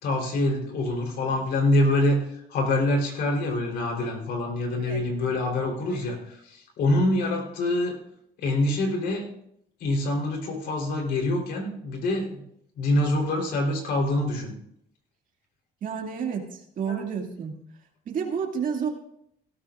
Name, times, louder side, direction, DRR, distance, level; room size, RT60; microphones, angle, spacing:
voice 1, 0.0-8.0 8.4-9.3 9.8-12.4 12.8-14.5 16.9-17.0, left 1 dB, 70° left, 1 dB, 3.8 m, -25 dB
voice 2, 15.8-17.5 18.1-18.9, right 7 dB, 55° right, 3 dB, 2.3 m, -30 dB
17.0 x 13.5 x 2.5 m, 0.73 s
cardioid pair, 110°, 17 cm